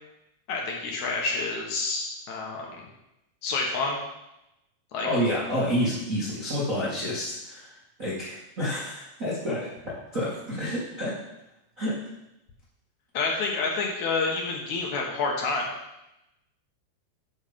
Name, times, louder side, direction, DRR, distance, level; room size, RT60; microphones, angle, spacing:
voice 1, 0.5-2.7 3.4-4.0 4.9-5.1 13.1-15.7, left 3 dB, 70° left, -1 dB, 1.8 m, -28 dB
voice 2, 5.0-7.6 8.0-9.7 10.1-11.1 11.8-12.0, equal, 40° right, -9 dB, 1.2 m, -28 dB
8.2 x 6.5 x 5.2 m, 0.90 s
omnidirectional pair, 5.0 m